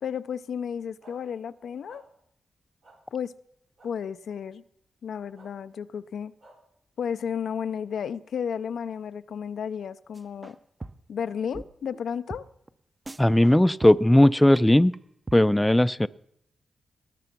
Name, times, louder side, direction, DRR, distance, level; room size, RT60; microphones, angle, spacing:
voice 1, 0.0-2.0 3.1-3.3 3.8-4.6 5.0-6.3 7.0-10.6 11.1-12.4, left 7 dB, 80° left, 13 dB, 0.4 m, -33 dB
sound 1, 1.0-1.2 1.9-2.0 2.8-3.0 3.8-3.9 5.3-5.5 6.4-6.5, right 2 dB, 85° right, 5.1 m, -52 dB
sound 2, 10.1-10.6 10.8-11.2 11.5-11.6 11.9-12.0 12.3-12.4 12.7-12.8 13.1-13.5 13.8-14.2 14.6-14.7 14.9-15.0 15.3-15.4, right 2 dB, 30° right, 0.8 m, -39 dB
voice 2, 13.2-14.9 15.3-16.1, left 1 dB, 10° left, 16 dB, 0.4 m, -18 dB
19.0 x 6.8 x 6.0 m, 0.72 s
supercardioid pair, 50°, 0 cm